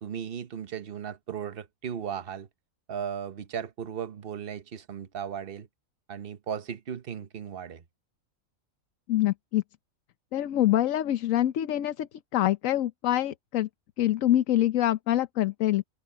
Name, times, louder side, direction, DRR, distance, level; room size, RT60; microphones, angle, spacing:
voice 1, 0.0-2.5 2.9-5.7 6.1-7.8, right 8 dB, 45° right, 1.0 m, -36 dB
voice 2, 9.1-9.6 10.3-13.7 14.0-15.8, left 13 dB, 70° left, 1.1 m, -25 dB
open air
omnidirectional pair, 1.5 m